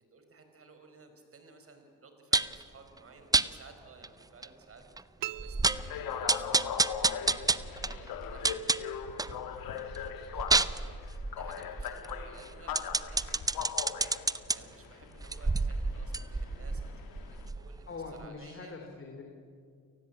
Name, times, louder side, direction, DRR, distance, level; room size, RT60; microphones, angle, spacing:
voice 1, 0.1-4.8 5.4-17.8 18.2-18.8, right 4 dB, 40° right, 6 dB, 4.8 m, -56 dB
sound 1, 2.3-2.6 3.3-3.5 4.0-4.1 4.4-4.5 5.0-5.1 5.4-5.9 6.3-9.4 9.8-14.6 15.2-17.9 18.2-18.3, right 3 dB, 10° right, 0.6 m, -29 dB
sound 2, 5.2-6.8, right 15 dB, 70° right, 0.5 m, -43 dB
sound 3, 5.6-17.5, left 7 dB, 70° left, 2.3 m, -40 dB
voice 2, 17.9-19.2, left 4 dB, 35° left, 2 dB, 3.3 m, -43 dB
29.5 x 19.0 x 8.7 m, 2.2 s
cardioid pair, 120°, 36 cm